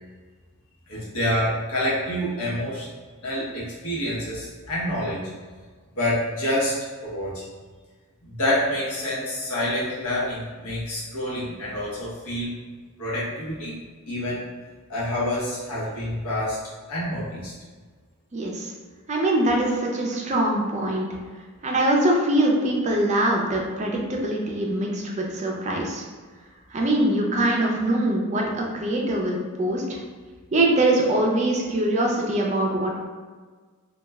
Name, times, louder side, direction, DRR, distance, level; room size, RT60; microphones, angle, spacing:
voice 1, 0.9-2.9 3.2-5.2 6.0-7.4 8.2-12.5 13.0-13.7 14.1-14.5 14.9-16.6 16.9-17.5, left 1 dB, 80° left, -7 dB, 0.9 m, -27 dB
voice 2, 18.3-18.7 19.1-21.1 21.6-26.0 26.7-30.0 30.5-33.0, right 1 dB, 35° right, -1 dB, 0.4 m, -23 dB
3.1 x 2.3 x 2.3 m, 1.5 s
head